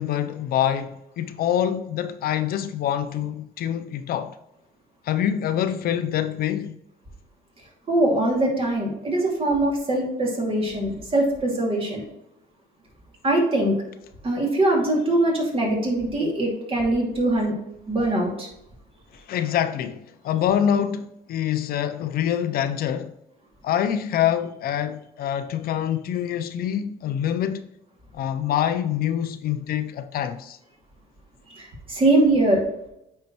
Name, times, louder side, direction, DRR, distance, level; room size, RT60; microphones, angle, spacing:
voice 1, 0.0-4.4 5.0-6.8 19.3-23.1 23.6-27.7 28.1-30.6, left 10 dB, 60° left, 0.5 m, -25 dB
voice 2, 7.9-12.0 13.2-13.8 14.2-17.5 17.9-18.5 31.5-32.6, right 1 dB, 35° right, 2.4 m, -22 dB
8.5 x 4.5 x 3.0 m
cardioid pair, 110°, 17 cm